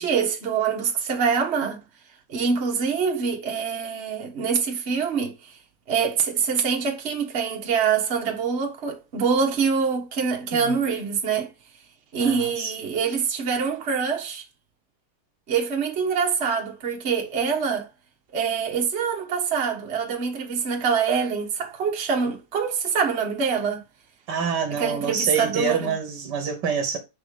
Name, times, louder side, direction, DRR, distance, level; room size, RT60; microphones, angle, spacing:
voice 1, 0.0-1.8 2.3-5.5 5.9-11.5 12.1-14.4 15.5-17.9 18.3-23.8 24.8-25.9, right 6 dB, 35° right, 1.3 m, -25 dB
voice 2, 12.2-12.7 24.3-27.0, right 6 dB, 60° right, 1.7 m, -27 dB
6.2 x 4.8 x 5.0 m
omnidirectional pair, 2.2 m